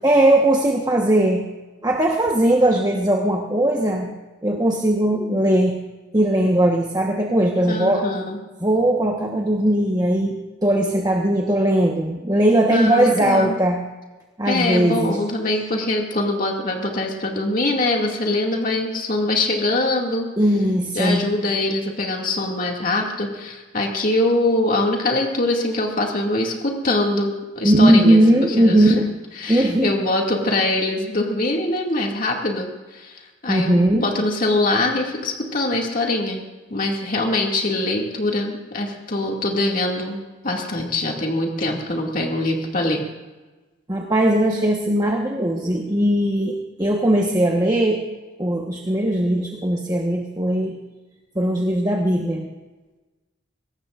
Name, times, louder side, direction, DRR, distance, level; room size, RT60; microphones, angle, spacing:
voice 1, 0.0-1.4 1.8-4.1 4.4-5.8 6.1-8.1 8.6-13.8 14.4-15.2 20.4-21.2 27.6-29.1 29.5-29.9 33.5-34.0 43.9-48.0 48.4-50.8 51.3-52.5, right 1 dB, 20° right, 0 dB, 1.2 m, -19 dB
voice 2, 7.7-8.4 12.7-13.6 14.5-20.3 20.9-28.2 28.6-28.9 29.4-36.4 36.7-40.2 40.4-43.0, left 2 dB, 45° left, 0 dB, 2.3 m, -23 dB
23.0 x 18.5 x 2.5 m, 1.2 s
head